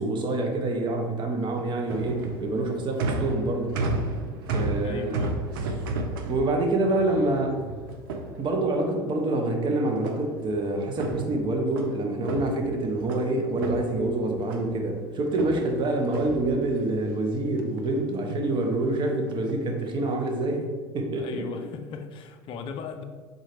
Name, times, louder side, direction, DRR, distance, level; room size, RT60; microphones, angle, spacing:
voice 1, 0.0-3.8 4.4-5.2 6.3-7.6 8.4-20.7 20.9-21.6, right 2 dB, 40° right, 0.9 m, -26 dB
sound 1, 1.4-8.9 10.0-10.5 10.8-13.3 13.6-14.8 15.3-17.0 17.4-17.9 18.2-18.5 19.3-19.6 20.2-20.5, right 2 dB, 75° right, 0.6 m, -33 dB
voice 2, 4.8-5.4 21.1-23.0, left 5 dB, 50° left, 0.5 m, -37 dB
3.9 x 3.9 x 3.4 m
hypercardioid pair, 75°, 12 cm